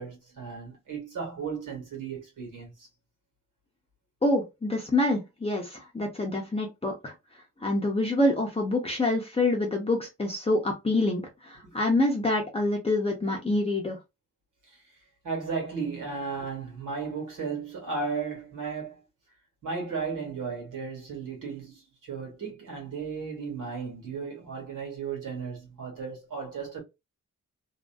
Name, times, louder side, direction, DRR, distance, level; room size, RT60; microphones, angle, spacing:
voice 1, 0.0-2.9 11.6-11.7 14.6-14.8 15.2-19.0 19.6-26.8, right 5 dB, 85° right, 1.8 m, -35 dB
voice 2, 4.2-7.1 7.6-14.0, left 2 dB, 20° left, 0.6 m, -26 dB
2.8 x 2.6 x 2.3 m
wide cardioid pair, 115°, 31 cm